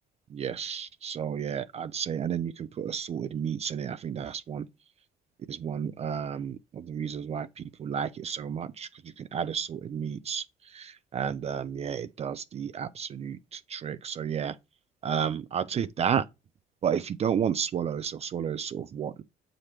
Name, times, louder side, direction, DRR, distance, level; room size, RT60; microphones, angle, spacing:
voice 1, 0.3-4.6 5.5-8.9 9.2-10.4 10.7-14.6 15.0-16.2 16.8-19.2, right 8 dB, 40° right, 0.4 m, -32 dB
7.1 x 4.9 x 3.0 m
cardioid pair, 110°, 17 cm